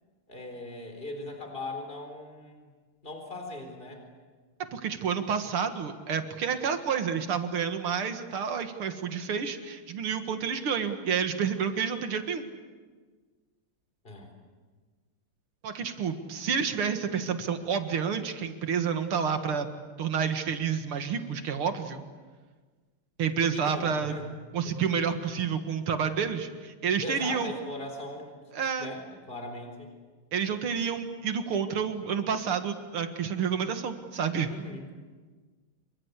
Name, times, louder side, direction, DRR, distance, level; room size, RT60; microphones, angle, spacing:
voice 1, 0.3-2.7 3.0-4.1 14.0-14.3 23.5-24.8 27.0-28.4 28.8-29.9 34.5-34.9, left 2 dB, 25° left, 4 dB, 4.2 m, -39 dB
voice 2, 4.7-12.5 15.6-19.7 20.0-22.0 23.2-24.1 24.5-27.5 28.5-28.9 30.3-34.5, right 7 dB, 85° right, 7 dB, 2.6 m, -29 dB
27.0 x 24.0 x 8.3 m, 1.4 s
omnidirectional pair, 2.3 m